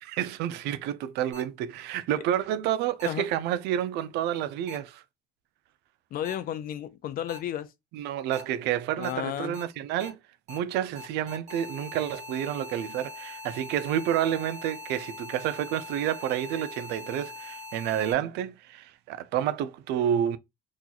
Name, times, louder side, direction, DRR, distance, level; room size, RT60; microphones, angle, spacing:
voice 1, 0.0-5.0 7.9-10.2 10.5-20.4, right 10 dB, 85° right, 0.4 m, -29 dB
sound 1, 1.3-1.4 3.0-3.1 4.7-4.8 6.2-6.3 7.3-7.4 8.3-8.4 9.0-9.1 9.5-9.6 10.0-10.1 10.5-10.6 11.0-18.1, left 2 dB, 45° right, 1.3 m, -42 dB
voice 2, 6.1-7.7 9.0-9.6, left 11 dB, 60° left, 0.5 m, -32 dB
3.0 x 2.3 x 3.8 m
cardioid pair, 110°, 17 cm